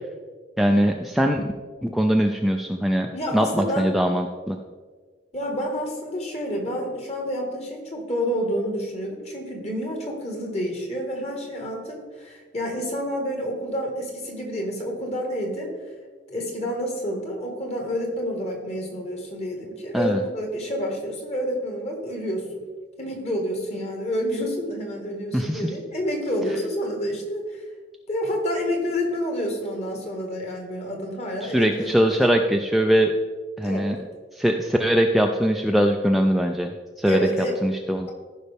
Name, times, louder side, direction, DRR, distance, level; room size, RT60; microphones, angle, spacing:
voice 1, 0.6-1.5 1.8-4.6 19.9-20.2 25.3-25.6 31.4-33.1 33.6-34.0 34.3-36.7 37.0-37.3 37.6-38.1, equal, ahead, 2 dB, 0.3 m, -21 dB
voice 2, 3.1-3.9 5.3-15.7 16.3-22.6 23.0-27.6 28.1-32.3 33.6-33.9 37.0-37.6, equal, 35° left, 1 dB, 1.7 m, -29 dB
14.5 x 5.5 x 3.5 m, 1.5 s
head